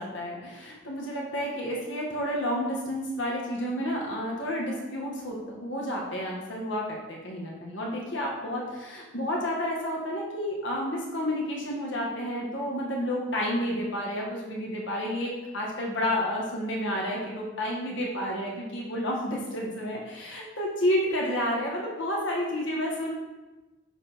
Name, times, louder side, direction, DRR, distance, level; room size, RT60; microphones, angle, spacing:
voice 1, 0.0-23.1, equal, 70° left, -2 dB, 1.5 m, -30 dB
7.0 x 4.3 x 3.5 m, 1.1 s
head